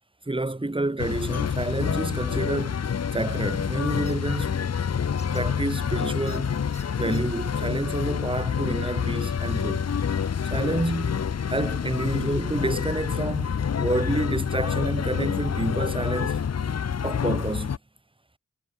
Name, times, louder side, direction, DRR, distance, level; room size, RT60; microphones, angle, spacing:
voice 1, 0.3-2.8 3.1-4.5 5.2-6.5 7.0-9.9 10.4-16.4 17.0-17.8, right 2 dB, 15° right, 1.0 m, -29 dB
sound 1, 1.0-17.8, left 7 dB, 50° left, 0.5 m, -27 dB
sound 2, 4.1-4.2 5.2-5.4 6.3-6.4 6.7-7.2, left 1 dB, 20° left, 6.4 m, -47 dB
wide cardioid pair, 65°, 34 cm